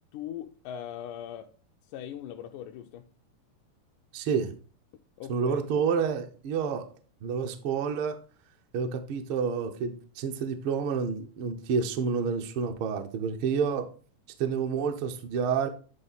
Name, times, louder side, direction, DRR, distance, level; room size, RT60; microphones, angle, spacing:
voice 1, 0.1-1.5 1.9-3.1 5.2-5.6, left 10 dB, 90° left, 2.1 m, -40 dB
voice 2, 4.1-4.5 5.3-6.9 7.2-8.2 8.7-13.9 14.4-15.7, right 6 dB, 75° right, 1.2 m, -29 dB
10.5 x 3.6 x 4.0 m
omnidirectional pair, 3.5 m